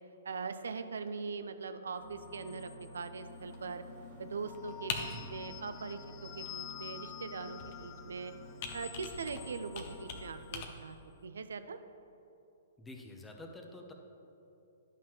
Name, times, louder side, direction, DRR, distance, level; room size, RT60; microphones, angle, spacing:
voice 1, 0.2-3.8 4.2-8.3 8.7-11.0 11.2-11.8, right 4 dB, 75° right, 10 dB, 0.5 m, -41 dB
sound 1, 1.9-3.4 4.3-10.9, left 11 dB, 30° left, 0.3 m, -50 dB
sound 2, 2.0-10.0, left 2 dB, 30° right, 1.7 m, -52 dB
Computer keyboard, 3.3-10.7, left 5 dB, 45° left, 0.8 m, -46 dB
voice 2, 5.0-5.3 12.8-13.9, left 2 dB, 10° left, 2 dB, 0.8 m, -49 dB
10.5 x 5.7 x 3.1 m, 2.9 s
figure-of-eight pair, 120°, 0 cm